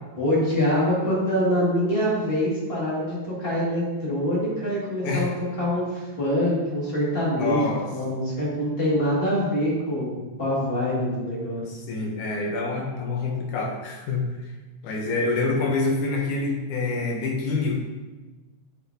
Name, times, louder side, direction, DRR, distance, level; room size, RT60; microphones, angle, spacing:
voice 1, 0.2-5.3 5.6-11.8, equal, 20° left, -7 dB, 2.0 m, -25 dB
voice 2, 7.4-7.9 11.9-14.3 14.8-17.8, left 3 dB, 75° left, 0 dB, 2.4 m, -26 dB
7.8 x 6.3 x 2.8 m, 1.2 s
omnidirectional pair, 3.6 m